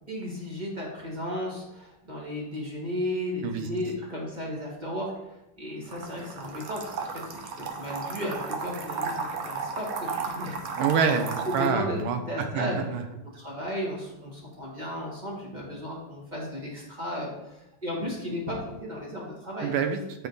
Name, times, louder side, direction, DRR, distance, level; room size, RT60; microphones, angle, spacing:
voice 1, 0.1-7.2 7.6-10.8 11.4-12.0 12.3-13.0 13.2-19.7, left 1 dB, 25° right, -3 dB, 1.3 m, -34 dB
sound 1, 5.9-11.7, right 5 dB, 60° right, 1.0 m, -34 dB
voice 2, 10.8-12.2 12.5-13.0 19.6-20.3, right 6 dB, 90° right, 7 dB, 1.6 m, -26 dB
8.2 x 4.4 x 3.9 m, 0.89 s
omnidirectional pair, 2.3 m